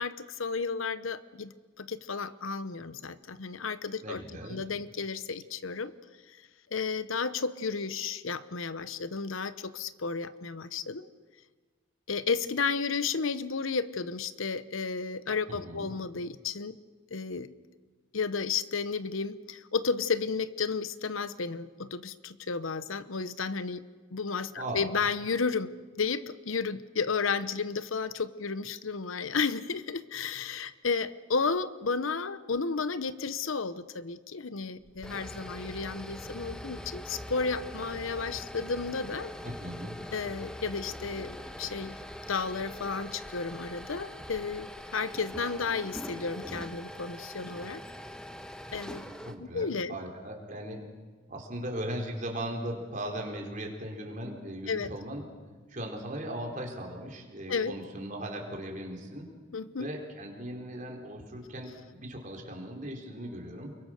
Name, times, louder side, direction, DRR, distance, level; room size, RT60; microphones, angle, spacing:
voice 1, 0.0-4.2 4.5-5.9 6.7-11.1 12.1-16.8 17.1-17.5 18.1-23.8 24.1-39.3 40.1-42.0 42.3-47.8 48.7-49.0 49.4-50.0 54.7-54.9 57.5-57.7 59.5-59.9, left 5 dB, 80° left, 14 dB, 0.9 m, -32 dB
voice 2, 4.0-4.6 15.5-15.9 24.5-24.9 39.4-40.0 49.2-50.8 51.3-55.2 55.7-59.3 59.8-63.8, right 1 dB, 40° right, 1 dB, 4.3 m, -38 dB
sound 1, 34.8-49.4, equal, 5° left, 1.1 m, -43 dB
30.0 x 23.0 x 6.6 m, 1.4 s
head